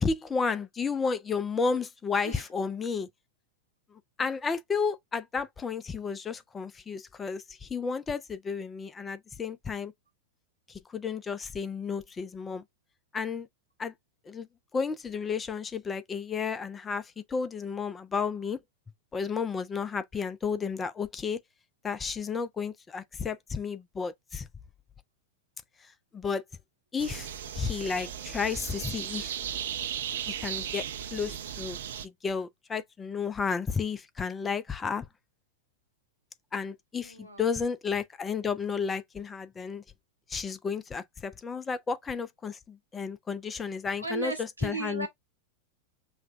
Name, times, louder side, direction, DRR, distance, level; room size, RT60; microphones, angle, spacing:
voice 1, 0.0-3.1 3.9-9.9 10.7-12.6 13.1-13.5 13.8-13.9 14.2-14.5 14.7-18.6 19.1-21.4 21.8-24.5 25.8-26.4 26.9-29.4 30.3-30.8 31.1-31.8 32.0-35.1 36.5-39.8 40.3-44.3 44.6-45.1, left 5 dB, 15° left, 0.5 m, -32 dB
sound 1, 27.0-32.1, right 9 dB, 60° right, 0.5 m, -36 dB
voice 2, 37.0-37.4 44.0-45.1, right 3 dB, 85° right, 1.1 m, -36 dB
5.5 x 2.2 x 2.5 m
figure-of-eight pair, 90°, 0 cm